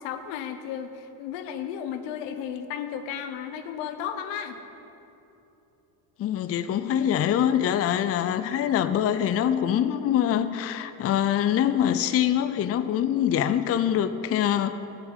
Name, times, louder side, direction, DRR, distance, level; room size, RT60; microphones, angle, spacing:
voice 1, 0.0-4.6, left 8 dB, 75° left, 8 dB, 1.0 m, -34 dB
voice 2, 6.2-14.8, left 10 dB, 35° left, 12 dB, 0.5 m, -24 dB
8.0 x 7.5 x 8.1 m, 3.0 s
supercardioid pair, 85°, 44 cm